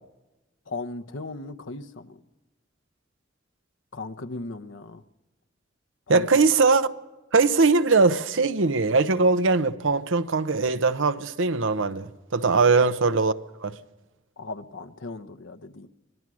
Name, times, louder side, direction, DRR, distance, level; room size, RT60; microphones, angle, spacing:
voice 1, 0.7-2.2 3.9-5.0 6.1-6.3 12.5-12.8 14.4-15.9, left 3 dB, 85° left, 0.9 m, -37 dB
voice 2, 6.1-6.9 7.3-13.3 13.6-13.7, right 4 dB, 90° right, 0.8 m, -21 dB
25.0 x 17.0 x 6.3 m
head